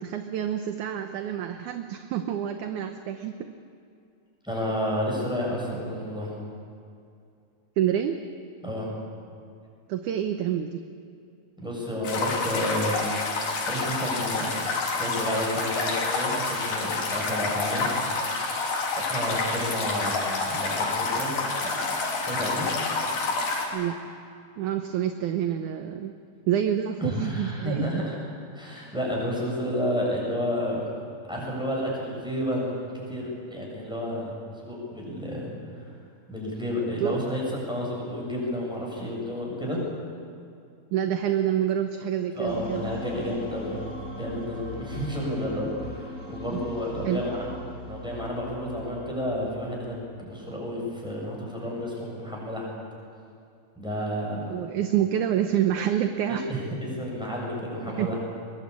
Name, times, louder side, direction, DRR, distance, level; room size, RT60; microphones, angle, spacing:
voice 1, 0.0-3.5 7.8-8.2 9.9-10.8 23.7-24.0 24.6-26.1 26.5-28.0 37.0-37.2 40.9-42.8 46.5-46.6 47.0-47.2 54.5-56.5 58.0-58.1, right 10 dB, 70° right, 7 dB, 2.1 m, -27 dB
voice 2, 4.4-6.3 8.6-8.9 11.6-13.0 13.7-14.5 14.9-17.9 19.0-21.3 21.6-21.8 22.2-22.7 27.0-28.2 28.5-30.8 31.3-34.3 34.6-35.9 36.3-39.8 42.3-43.8 44.1-47.5 47.9-52.7 53.8-54.5 56.3-58.2, equal, ahead, -3 dB, 7.3 m, -31 dB
sound 1, 12.0-23.7, left 3 dB, 85° left, 5.0 m, -28 dB
sound 2, 42.5-50.6, left 2 dB, 35° left, 1.6 m, -39 dB
23.0 x 21.0 x 8.6 m, 2.4 s
omnidirectional pair, 4.2 m